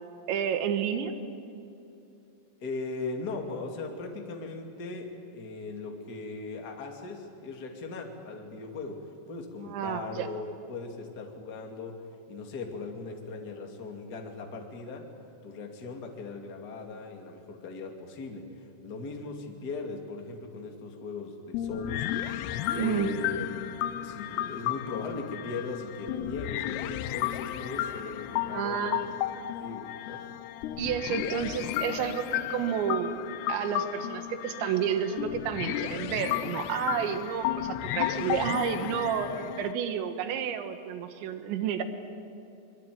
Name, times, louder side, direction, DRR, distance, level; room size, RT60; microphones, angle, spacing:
voice 1, 0.3-1.1 9.6-10.3 22.8-23.1 28.5-29.1 30.8-33.1 33.5-41.8, right 8 dB, 90° right, 9 dB, 3.7 m, -30 dB
voice 2, 2.6-12.0 12.3-15.0 15.4-22.1 22.7-23.5 24.0-29.2 29.5-30.2, left 3 dB, 30° left, 2 dB, 2.4 m, -38 dB
sound 1, 21.5-39.7, left 13 dB, 75° left, 2.7 m, -33 dB
24.5 x 23.0 x 9.5 m, 2.8 s
omnidirectional pair, 5.1 m